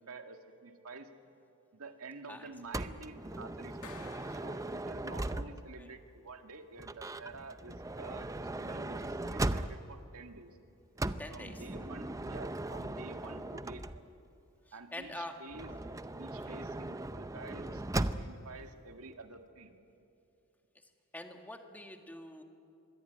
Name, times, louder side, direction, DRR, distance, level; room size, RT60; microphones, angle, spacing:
voice 1, 0.1-1.1 1.7-10.6 11.3-14.0 14.7-15.9 16.2-19.7, right 3 dB, 80° right, 5 dB, 2.0 m, -49 dB
Motor vehicle (road) / Sliding door, 2.7-5.8 6.8-10.0 11.0-14.3 15.5-18.5, right 2 dB, 15° right, 0.6 m, -38 dB
Clapping, 3.8-5.5, left 5 dB, 85° left, 1.8 m, -54 dB
voice 2, 5.3-5.9 11.2-11.6 13.2-13.5 14.7-15.3 16.3-16.6 21.1-22.4, left 1 dB, 10° left, 4 dB, 2.0 m, -46 dB
25.0 x 22.0 x 9.4 m, 2.7 s
head